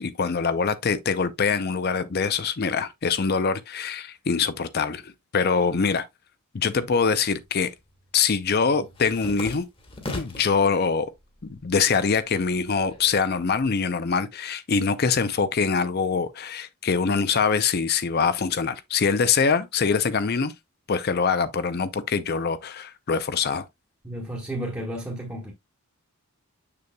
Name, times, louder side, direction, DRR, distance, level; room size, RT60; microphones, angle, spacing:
voice 1, 0.0-6.1 6.5-7.7 8.1-9.6 10.1-11.1 11.4-20.5 20.9-23.6, left 5 dB, 45° left, 0.5 m, -24 dB
sound 1, 7.2-7.5 7.8-10.6 11.1-11.7 12.0-13.7, left 2 dB, 25° left, 1.4 m, -39 dB
voice 2, 24.0-25.5, right 1 dB, 10° right, 1.4 m, -32 dB
6.9 x 6.7 x 2.2 m
head